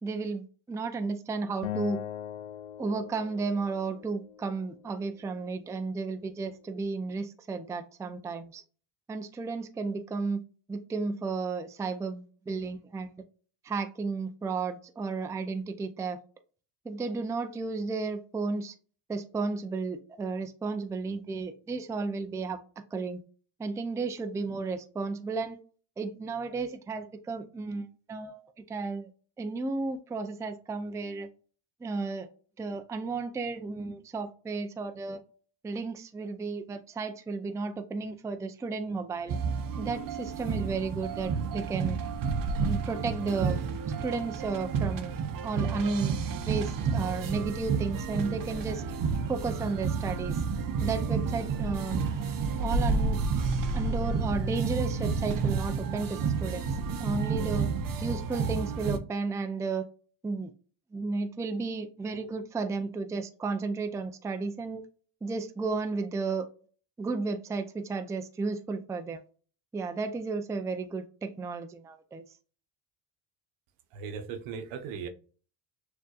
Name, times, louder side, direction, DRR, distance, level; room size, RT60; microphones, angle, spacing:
voice 1, 0.0-2.0 2.8-8.6 9.1-10.4 10.7-13.1 13.6-16.2 16.8-18.7 19.1-22.6 22.9-23.2 23.6-25.6 26.0-29.1 29.4-31.3 31.8-32.3 32.6-35.2 35.6-39.4 39.8-42.0 42.6-43.6 44.0-45.2 45.4-46.2 46.5-48.8 49.3-50.4 50.8-52.0 52.6-53.2 53.7-57.7 58.0-59.9 60.2-60.5 60.9-64.8 65.2-66.5 67.0-69.2 69.7-72.2, right 4 dB, 5° right, 7 dB, 0.3 m, -33 dB
Acoustic guitar, 1.6-4.9, left 11 dB, 90° left, 0.6 m, -40 dB
sound 1, 39.3-59.0, right 5 dB, 45° right, 0.7 m, -30 dB
voice 2, 73.9-75.1, right 6 dB, 80° right, 9 dB, 0.9 m, -38 dB
6.4 x 2.6 x 2.3 m, 0.40 s
supercardioid pair, 90°, 48 cm